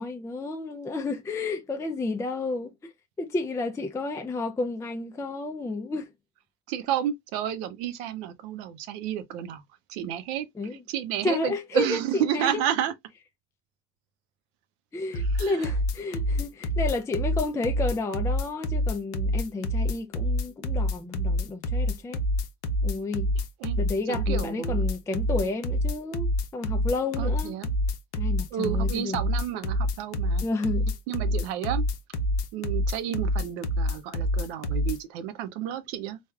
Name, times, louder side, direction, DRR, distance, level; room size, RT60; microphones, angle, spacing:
voice 1, 0.0-2.7 3.2-6.1 10.6-10.8 11.2-12.5 14.9-22.2 22.8-23.3 23.8-27.6 28.1-29.3 30.4-30.9, left 3 dB, 10° left, 0.4 m, -31 dB
voice 2, 6.7-9.6 9.9-10.5 10.7-12.9 15.1-15.7 23.6-23.8 24.1-24.8 27.2-27.7 28.5-30.4 31.1-31.8 32.5-36.2, right 10 dB, 85° right, 0.6 m, -31 dB
sound 1, 15.1-35.0, equal, 70° left, 0.7 m, -27 dB
3.3 x 2.3 x 2.3 m
supercardioid pair, 95°, 30 cm